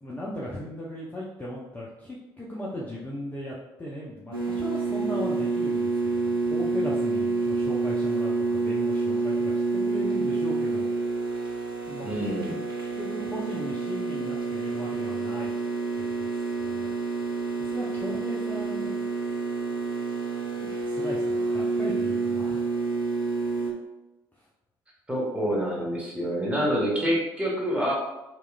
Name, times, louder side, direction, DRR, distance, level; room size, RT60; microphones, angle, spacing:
voice 1, 0.0-10.9 11.9-12.4 12.9-15.5 16.0-16.3 16.6-16.9 17.6-18.9 20.6-22.6 24.4-24.5, left 1 dB, 15° left, -5 dB, 0.5 m, -37 dB
sound 1, 4.3-23.7, right 4 dB, 90° right, 0.4 m, -28 dB
voice 2, 12.0-12.6 25.1-27.9, equal, 10° right, -4 dB, 1.0 m, -27 dB
2.9 x 2.3 x 2.2 m, 0.98 s
figure-of-eight pair, 45°, 12 cm